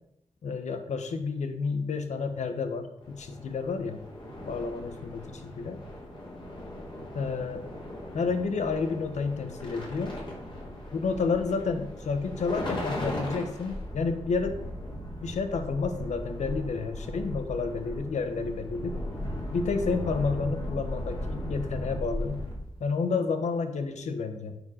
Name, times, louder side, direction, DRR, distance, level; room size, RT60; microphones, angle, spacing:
voice 1, 0.4-4.1 4.5-5.8 7.1-7.7 8.1-10.2 10.9-14.6 15.2-19.0 19.5-22.4 22.8-24.6, left 4 dB, 85° left, 8 dB, 1.2 m, -30 dB
sound 1, 3.0-22.8, equal, 40° left, 4.0 m, -37 dB
9.5 x 5.1 x 6.4 m, 0.78 s
cardioid pair, 70°, 12 cm